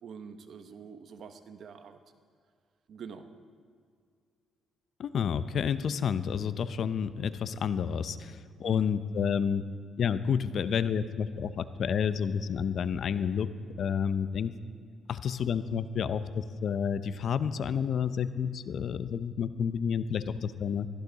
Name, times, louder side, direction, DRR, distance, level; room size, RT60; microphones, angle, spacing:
voice 1, 0.0-2.0 2.9-3.3 8.6-8.9, right 6 dB, 65° right, 9 dB, 1.0 m, -45 dB
voice 2, 5.0-9.7 10.0-13.5 13.8-14.5 15.1-20.9, left 7 dB, 60° left, 13 dB, 0.6 m, -30 dB
15.5 x 14.5 x 4.0 m, 2.2 s
cardioid pair, 90°, 0 cm